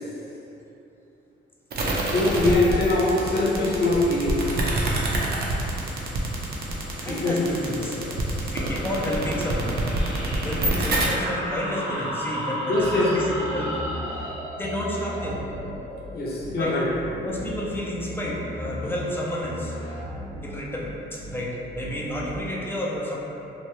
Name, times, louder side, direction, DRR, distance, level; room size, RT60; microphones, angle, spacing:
sound 1, 1.7-11.0, right 2 dB, 55° right, 0.5 m, -26 dB
voice 1, 2.1-4.5 7.1-7.3 8.0-8.4 12.7-13.1 16.1-16.9, left 2 dB, 55° left, -5 dB, 0.8 m, -23 dB
voice 2, 7.0-8.0 8.4-9.9 10.4-13.7 14.5-15.4 16.6-16.8 17.2-19.7 20.4-23.2, equal, 10° left, -4 dB, 0.5 m, -30 dB
sound 2, 9.7-17.0, right 1 dB, 90° right, 0.7 m, -34 dB
sound 3, 12.8-14.3 14.6-15.8 16.4-16.7 17.0-19.1 19.4-20.6 21.2-21.5 21.8-22.4, left 1 dB, 80° left, 0.9 m, -37 dB
2.7 x 2.2 x 3.0 m, 3.0 s
cardioid pair, 90°, 20 cm